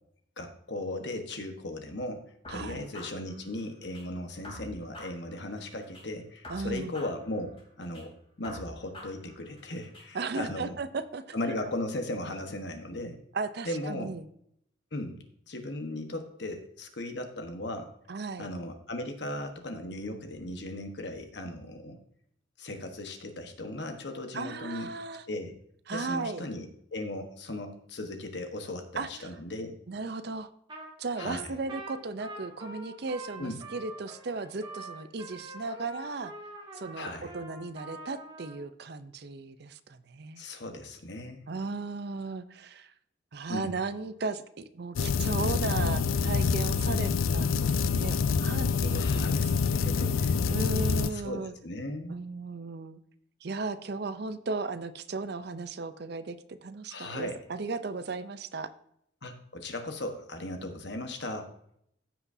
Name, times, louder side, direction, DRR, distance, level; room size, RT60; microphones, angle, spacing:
voice 1, 0.4-10.8 11.3-13.2 13.6-14.1 14.9-17.9 18.4-22.0 22.6-24.9 25.3-25.6 25.9-26.7 26.9-29.8 31.2-31.6 33.4-33.6 37.0-37.3 40.4-41.4 43.5-43.7 48.9-50.2 51.1-52.2 56.9-57.4 59.2-61.5, left 1 dB, 60° left, 5 dB, 1.2 m, -37 dB
sound 1, 2.4-4.0 4.4-6.0 6.4-8.0 8.4-10.0, left 1 dB, 30° left, 3.2 m, -46 dB
voice 2, 2.5-2.9 6.5-6.9 10.1-11.2 13.3-14.2 18.1-18.5 24.3-25.2 25.9-26.5 29.0-29.3 29.9-30.5 31.0-36.3 36.7-40.5 41.5-42.9 43.3-50.1 50.5-51.5 52.1-53.0 53.4-58.7, right 3 dB, 55° right, 12 dB, 0.5 m, -36 dB
Trumpet, 30.7-30.9 31.2-38.6, right 2 dB, 25° right, 1.5 m, -45 dB
sound 2, 45.0-51.1, left 5 dB, 90° left, 0.4 m, -26 dB
15.0 x 6.0 x 2.7 m, 0.71 s
head